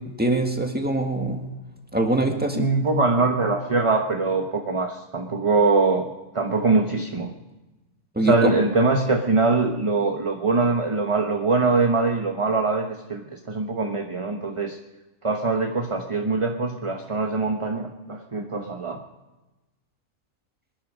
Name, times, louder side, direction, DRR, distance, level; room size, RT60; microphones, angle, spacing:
voice 1, 0.2-1.4 1.9-2.7 8.2-8.5, right 1 dB, 5° right, 3 dB, 1.8 m, -23 dB
voice 2, 2.5-6.1 6.3-7.3 8.2-14.8 15.2-19.0, right 3 dB, 25° right, 3 dB, 1.0 m, -23 dB
25.5 x 11.0 x 5.2 m, 1.1 s
omnidirectional pair, 1.4 m